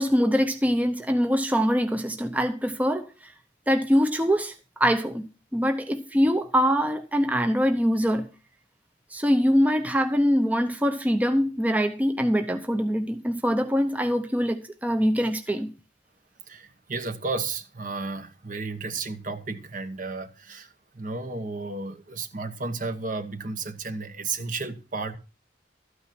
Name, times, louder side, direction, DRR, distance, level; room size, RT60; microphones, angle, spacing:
voice 1, 0.0-3.3 3.7-4.5 4.8-8.3 9.1-15.7, equal, 10° right, 0.7 m, -23 dB
voice 2, 16.5-25.2, right 3 dB, 50° right, 1.2 m, -33 dB
13.5 x 9.0 x 4.3 m
head